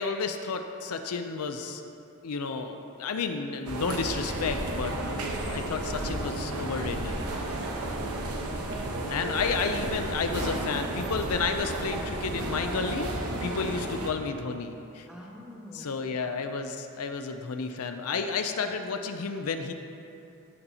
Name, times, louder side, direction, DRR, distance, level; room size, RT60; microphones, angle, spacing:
voice 1, 0.0-1.8 2.2-4.9 5.3-7.2 9.1-13.1 13.4-15.1 15.7-19.7, left 5 dB, 70° left, 6 dB, 0.5 m, -31 dB
sound 1, 3.7-14.1, right 1 dB, 80° right, 1.0 m, -32 dB
voice 2, 7.2-9.0 15.1-15.9, left 1 dB, 5° right, -4 dB, 1.3 m, -48 dB
15.0 x 6.8 x 2.8 m, 2.8 s
head